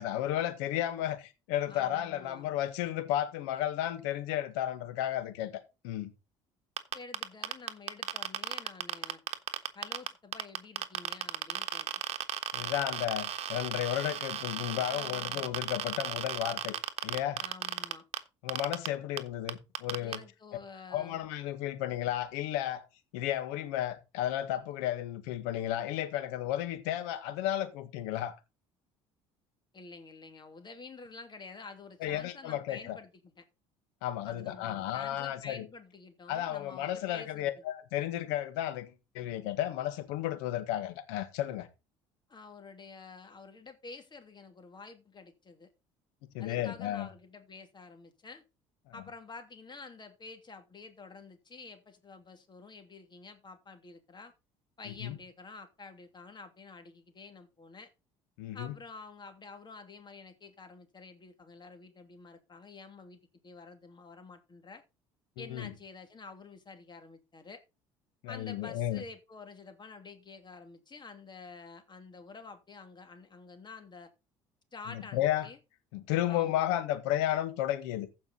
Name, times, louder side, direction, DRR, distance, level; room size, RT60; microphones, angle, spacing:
voice 1, 0.0-6.1 12.5-16.8 17.0-17.4 18.4-20.2 20.9-22.8 23.1-28.3 32.0-33.0 34.0-35.6 36.3-41.7 46.3-47.1 48.9-49.0 54.8-55.1 58.4-58.7 65.4-65.7 68.2-69.0 75.1-75.5 75.9-78.1, left 12 dB, 80° left, 1.7 m, -33 dB
voice 2, 1.7-2.5 6.9-9.2 9.7-11.9 14.9-15.5 17.4-18.0 20.0-21.2 29.7-33.4 34.2-37.5 42.3-45.7 46.4-48.4 48.9-54.3 54.8-57.9 58.5-64.8 65.4-67.6 68.3-74.1 74.7-75.6 76.3-76.8, left 4 dB, 35° left, 2.8 m, -49 dB
sound 1, 6.8-10.1 10.3-18.2 18.5-18.9 19.2-19.3 19.5-20.2, right 10 dB, 50° right, 1.3 m, -34 dB
15.0 x 5.3 x 4.0 m
hypercardioid pair, 70°, 14 cm